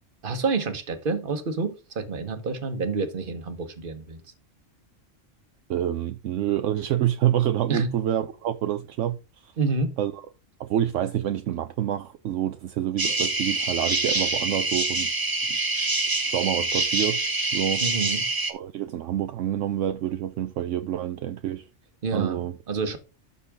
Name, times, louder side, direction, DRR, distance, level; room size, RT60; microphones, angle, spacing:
voice 1, 0.2-4.2 7.7-7.9 9.6-9.9 17.8-18.2 22.0-23.0, right 4 dB, 45° right, 1.3 m, -28 dB
voice 2, 5.7-9.2 9.4-9.5 10.0-10.1 10.6-15.1 15.5-15.6 16.2-17.2 17.5-17.8 18.5-21.7 22.1-22.5, right 11 dB, 75° right, 0.9 m, -27 dB
sound 1, 13.0-18.5, right 3 dB, 20° right, 0.8 m, -26 dB
12.5 x 4.2 x 3.5 m
omnidirectional pair, 1.3 m